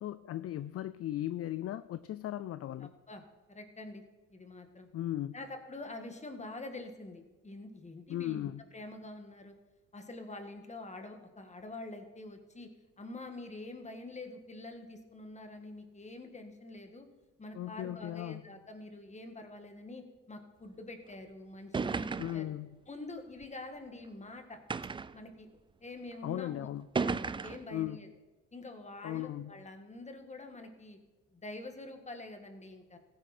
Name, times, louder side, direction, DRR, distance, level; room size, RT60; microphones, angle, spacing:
voice 1, 0.0-2.9 4.9-5.4 8.1-8.6 17.5-18.5 22.2-22.7 26.2-26.9 27.7-28.0 29.0-29.6, left 13 dB, 50° left, 14 dB, 0.4 m, -37 dB
voice 2, 2.8-3.2 3.5-4.0 4.3-4.9 5.3-9.6 9.9-12.7 13.0-17.1 17.4-22.5 22.9-24.6 25.1-25.5 25.8-26.7 27.0-28.1 28.5-31.0 31.3-33.0, left 2 dB, 25° left, 6 dB, 1.8 m, -46 dB
sound 1, 21.1-21.2 21.7-22.5 23.4-23.5 24.7-25.2 26.1-26.2 27.0-27.7, right 5 dB, 15° right, 0.3 m, -34 dB
15.5 x 9.4 x 4.4 m, 1.2 s
cardioid pair, 90°, 30 cm